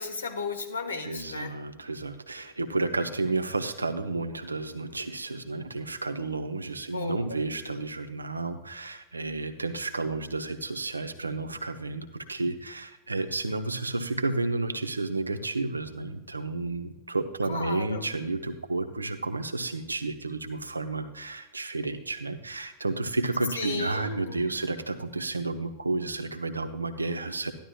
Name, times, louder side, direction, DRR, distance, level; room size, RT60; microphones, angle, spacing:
voice 1, 0.0-1.6 6.9-7.2 17.5-18.1 23.5-24.7, left 4 dB, 75° left, 4 dB, 1.5 m, -34 dB
voice 2, 1.0-27.5, right 3 dB, 80° right, 8 dB, 0.8 m, -31 dB
13.0 x 11.5 x 2.3 m, 0.99 s
figure-of-eight pair, 90°, 0 cm